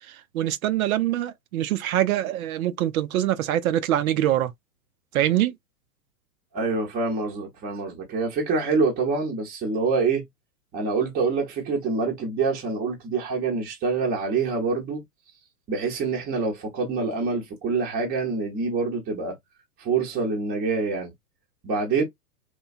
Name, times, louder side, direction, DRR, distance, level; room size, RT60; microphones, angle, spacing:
voice 1, 0.3-4.5 5.1-5.5, right 12 dB, 60° right, 0.6 m, -24 dB
voice 2, 6.5-10.2 10.7-15.0 15.7-19.3 19.8-21.1 21.6-22.0, right 4 dB, 20° right, 0.8 m, -26 dB
3.1 x 2.2 x 2.3 m
hypercardioid pair, 120°, 47 cm